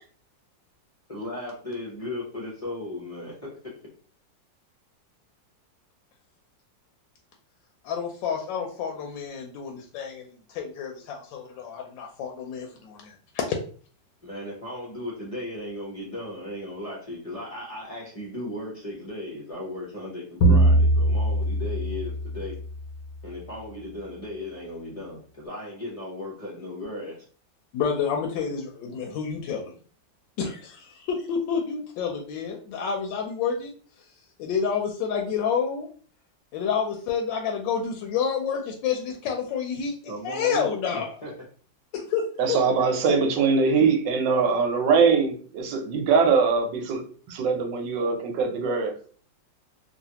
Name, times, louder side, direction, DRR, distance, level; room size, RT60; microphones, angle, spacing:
voice 1, 1.1-3.6 14.2-22.5 23.2-27.2 40.1-41.3, left 1 dB, 45° left, -5 dB, 0.4 m, -36 dB
voice 2, 7.8-13.6 27.7-29.7 30.4-33.7 34.0-34.1 34.4-35.9 36.5-41.1 41.9-42.6, left 6 dB, 85° left, 1 dB, 1.3 m, -29 dB
sound 1, 20.4-23.1, right 1 dB, 70° left, 0.9 m, -22 dB
voice 3, 42.4-48.9, right 5 dB, 80° right, 4 dB, 1.3 m, -22 dB
3.2 x 2.4 x 2.8 m, 0.43 s
omnidirectional pair, 2.0 m